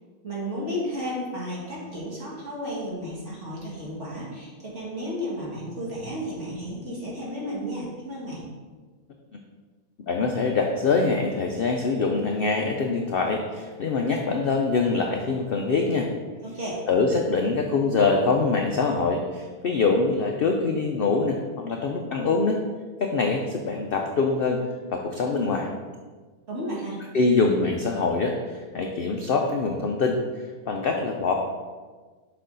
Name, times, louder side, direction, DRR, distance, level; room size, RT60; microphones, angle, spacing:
voice 1, 0.2-8.4 16.4-16.8 26.5-27.0, equal, 50° right, -5 dB, 2.2 m, -33 dB
voice 2, 10.0-16.1 16.9-22.6 23.0-24.6 24.9-25.7 27.1-31.3, left 4 dB, 65° left, 2 dB, 0.5 m, -24 dB
6.5 x 5.4 x 3.9 m, 1.4 s
omnidirectional pair, 1.6 m